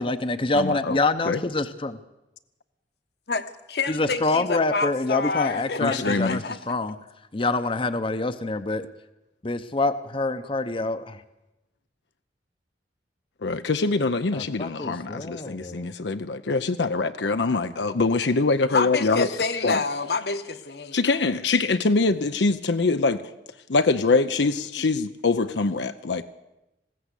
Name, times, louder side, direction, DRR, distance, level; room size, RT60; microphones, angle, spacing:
voice 1, 0.0-2.0 3.9-6.9 7.3-8.9 9.4-11.2 14.3-15.9, left 2 dB, 30° left, 10 dB, 0.7 m, -26 dB
voice 2, 0.5-1.0 1.2-1.4 5.8-6.4 13.4-19.3 19.6-19.8 20.9-23.2 23.7-26.2, left 3 dB, 80° left, 9 dB, 0.7 m, -24 dB
voice 3, 3.3-6.6 18.7-21.0, left 4 dB, 65° left, 8 dB, 1.2 m, -28 dB
20.5 x 16.0 x 8.3 m, 0.96 s
head